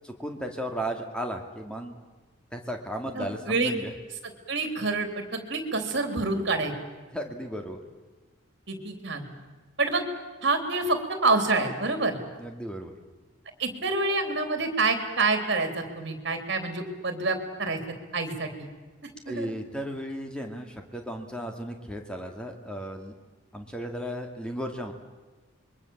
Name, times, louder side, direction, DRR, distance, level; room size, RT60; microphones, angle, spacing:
voice 1, 0.0-2.0 2.5-3.9 7.1-7.8 12.4-13.0 19.3-23.1 23.5-24.9, equal, 5° left, 3 dB, 2.3 m, -35 dB
voice 2, 3.1-3.7 4.5-6.7 8.7-9.3 9.8-10.0 10.4-12.2 13.6-17.8 18.1-18.7 19.3-19.5, right 3 dB, 55° right, 6 dB, 3.5 m, -27 dB
27.0 x 23.0 x 7.3 m, 1.3 s
head